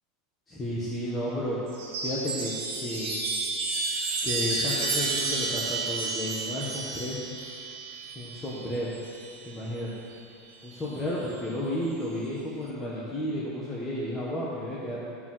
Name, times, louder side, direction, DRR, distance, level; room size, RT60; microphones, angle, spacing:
voice 1, 0.5-1.6 2.0-2.5 2.8-3.2 4.2-7.2 8.1-9.0 9.4-9.9 10.6-15.0, equal, 10° left, -7 dB, 1.4 m, -32 dB
Chime, 1.7-9.5 10.7-11.4, right 3 dB, 55° right, 2.0 m, -31 dB
14.5 x 5.2 x 5.7 m, 2.6 s
supercardioid pair, 165°, 0 cm